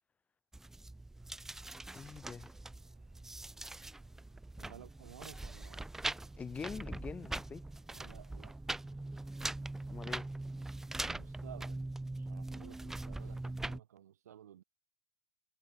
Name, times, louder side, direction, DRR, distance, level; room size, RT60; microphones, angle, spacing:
sound 1, 0.5-13.8, right 2 dB, 5° right, 0.3 m, -42 dB
sound 2, 1.2-11.8, right 23 dB, 40° right, 6.1 m, -72 dB
voice 1, 1.9-2.5 6.4-7.6 9.9-10.3, left 5 dB, 15° left, 0.9 m, -44 dB
voice 2, 4.6-5.9 7.9-8.6 11.0-11.9 12.1-14.6, right 10 dB, 65° right, 1.1 m, -55 dB
figure-of-eight pair, 95°, 9 cm